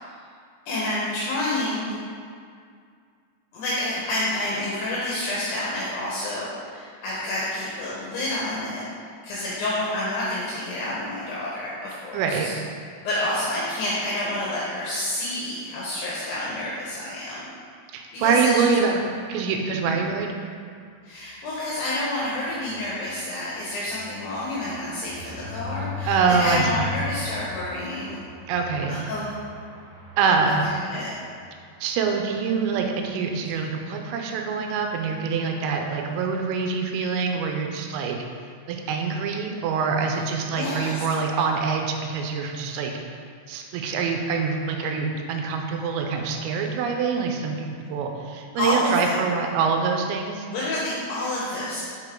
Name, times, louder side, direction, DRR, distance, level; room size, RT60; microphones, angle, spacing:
voice 1, 0.7-1.9 3.5-8.8 9.2-12.5 13.0-17.5 18.1-18.7 21.0-28.2 28.9-29.3 30.5-31.2 40.5-41.0 48.6-49.2 50.5-51.9, left 1 dB, 70° left, -7 dB, 3.2 m, -29 dB
voice 2, 12.1-12.5 17.9-19.0 19.3-20.3 26.0-26.7 28.5-29.0 30.2-30.6 31.8-38.2 38.7-42.9 43.5-50.5, right 5 dB, 90° right, 3 dB, 3.3 m, -25 dB
sound 1, 22.6-31.4 31.9-32.0 32.3-32.4 32.6-32.9, left 4 dB, 70° right, 3.5 m, -38 dB
8.1 x 7.4 x 3.8 m, 2.2 s
omnidirectional pair, 5.8 m